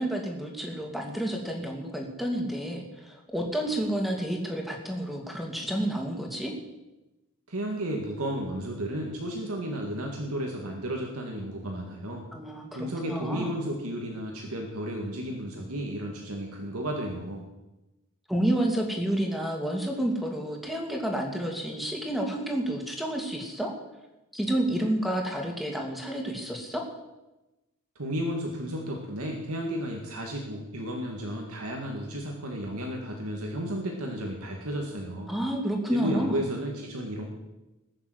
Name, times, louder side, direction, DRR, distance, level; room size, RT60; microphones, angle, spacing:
voice 1, 0.0-6.5 12.3-13.5 18.3-23.7 24.3-26.8 35.3-36.4, right 1 dB, ahead, 1 dB, 2.5 m, -30 dB
voice 2, 7.5-12.3 12.7-17.4 28.0-35.3 35.9-37.2, equal, 85° right, 1 dB, 2.1 m, -33 dB
20.5 x 7.0 x 8.0 m, 1.0 s
head